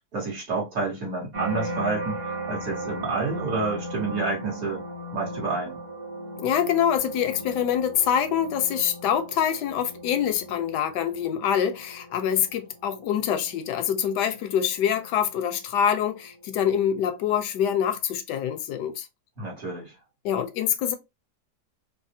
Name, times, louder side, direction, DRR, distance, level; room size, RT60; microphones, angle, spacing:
voice 1, 0.1-4.8 5.1-5.8 19.4-19.9, right 3 dB, 60° right, 1.9 m, -29 dB
sound 1, 1.3-16.5 17.0-17.5, right 1 dB, 30° right, 0.6 m, -38 dB
voice 2, 6.4-19.1 20.2-20.9, left 9 dB, 80° left, 1.2 m, -25 dB
4.1 x 2.1 x 2.7 m
omnidirectional pair, 1.8 m